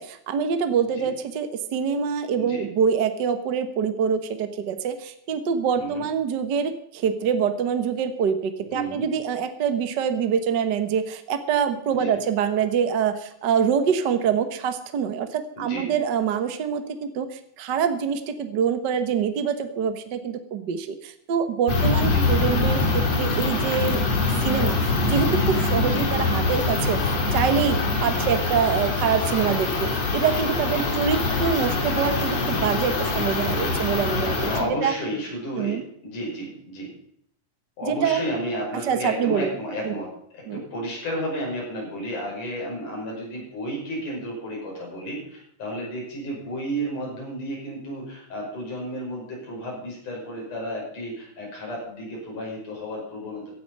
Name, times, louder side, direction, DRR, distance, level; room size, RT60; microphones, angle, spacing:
voice 1, 0.1-24.0 24.4-34.9 35.5-35.8 37.8-38.2 38.9-39.5 39.8-40.0 40.5-40.6, right 7 dB, 60° right, 9 dB, 1.1 m, -25 dB
voice 2, 8.7-9.1 11.9-12.2 15.6-15.9 22.0-22.5 25.8-26.1 28.0-28.3 30.6-31.0 34.4-35.8 36.0-36.9 37.8-40.1 40.3-53.5, equal, 85° left, -2 dB, 7.3 m, -32 dB
sound 1, 21.7-34.6, left 3 dB, 60° left, 3.7 m, -24 dB
16.0 x 11.5 x 5.4 m, 0.71 s
omnidirectional pair, 3.5 m